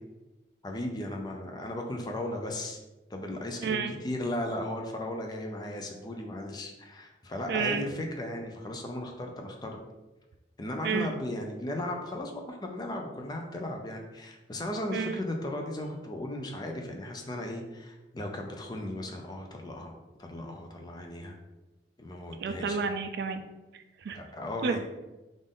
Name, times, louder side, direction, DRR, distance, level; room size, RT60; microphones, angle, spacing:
voice 1, 0.6-2.8 3.1-9.8 10.6-19.9 20.2-21.4 22.0-22.8 24.1-24.8, left 1 dB, 25° left, 2 dB, 0.4 m, -36 dB
voice 2, 3.6-3.9 7.5-7.9 10.8-11.1 14.9-15.2 22.4-23.4 23.7-24.2 24.6-24.8, right 5 dB, 60° right, 8 dB, 0.3 m, -30 dB
3.6 x 2.5 x 3.6 m, 1.1 s
head